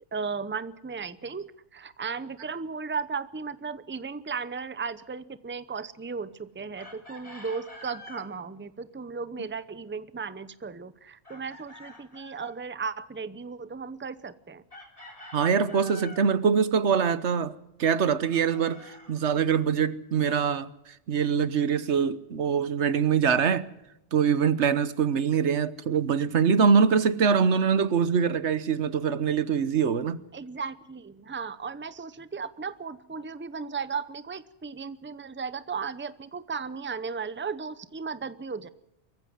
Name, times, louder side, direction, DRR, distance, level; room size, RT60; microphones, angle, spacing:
voice 1, 0.1-14.6 30.3-38.7, right 5 dB, 10° right, 0.6 m, -35 dB
Chicken rooster, 6.8-8.3 11.3-12.6 14.7-16.3 18.2-19.8, left 2 dB, 30° left, 3.6 m, -47 dB
voice 2, 15.3-20.7 21.1-23.7 24.1-30.2, right 6 dB, 75° right, 1.3 m, -24 dB
23.5 x 15.0 x 9.4 m
omnidirectional pair, 1.2 m